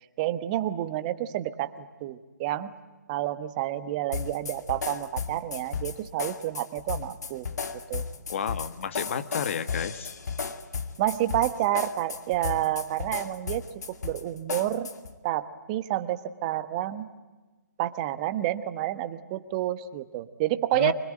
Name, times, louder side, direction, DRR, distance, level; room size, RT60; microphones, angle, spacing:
voice 1, 0.2-2.7 3.1-7.5 7.9-8.0 11.0-14.9 15.2-17.1 17.8-20.9, right 14 dB, 25° right, 12 dB, 1.2 m, -29 dB
sound 1, 4.1-15.1, left 5 dB, 65° left, 2.3 m, -34 dB
voice 2, 8.3-10.1 20.7-20.9, left 8 dB, 45° left, 12 dB, 1.5 m, -31 dB
25.0 x 21.5 x 9.0 m, 1.2 s
hypercardioid pair, 155°, 10 cm